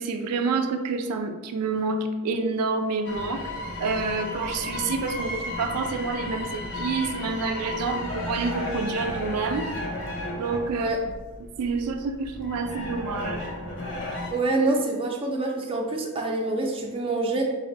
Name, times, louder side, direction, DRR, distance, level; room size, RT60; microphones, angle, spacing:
voice 1, 0.0-3.5 3.8-9.7 10.3-10.9 11.4-13.5, right 4 dB, 90° right, 6 dB, 0.4 m, -28 dB
sound 1, 3.0-14.3, left 2 dB, 55° left, 0.9 m, -34 dB
voice 2, 14.3-17.4, right 2 dB, 25° right, 0 dB, 0.5 m, -26 dB
4.0 x 2.5 x 3.9 m, 1.3 s
head